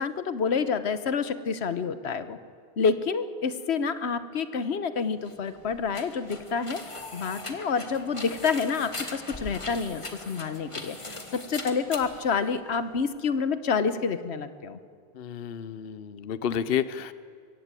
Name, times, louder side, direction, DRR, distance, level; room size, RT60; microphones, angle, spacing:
voice 1, 0.0-2.4 2.8-14.8, left 5 dB, 90° left, 12 dB, 1.3 m, -28 dB
sound 1, 5.2-13.0, left 2 dB, 30° left, 1.7 m, -41 dB
voice 2, 15.1-17.1, left 8 dB, 65° left, 15 dB, 0.9 m, -30 dB
23.0 x 16.5 x 9.0 m, 2.3 s
omnidirectional pair, 1.1 m